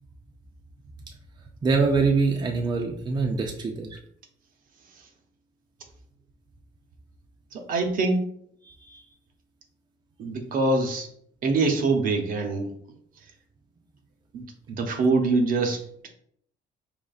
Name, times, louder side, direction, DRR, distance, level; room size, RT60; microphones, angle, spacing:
voice 1, 1.6-4.0 8.9-9.0, right 4 dB, 25° right, 2 dB, 0.5 m, -24 dB
voice 2, 7.5-8.2 10.2-11.1 11.4-12.7 14.3-16.1, right 3 dB, 55° right, 4 dB, 0.8 m, -24 dB
5.0 x 3.0 x 2.4 m, 0.66 s
cardioid pair, 110°, 17 cm